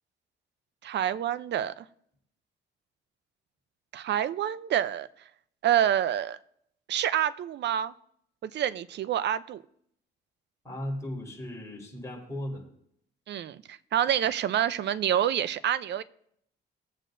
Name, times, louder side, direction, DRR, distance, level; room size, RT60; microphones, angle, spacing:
voice 1, 0.8-1.8 3.9-5.1 5.6-6.4 6.9-7.9 8.4-9.6 13.3-16.0, right 10 dB, 60° right, 14 dB, 0.6 m, -27 dB
voice 2, 10.6-12.6, left 1 dB, 15° left, -2 dB, 4.0 m, -36 dB
18.5 x 7.6 x 2.6 m, 0.70 s
cardioid pair, 90°, 20 cm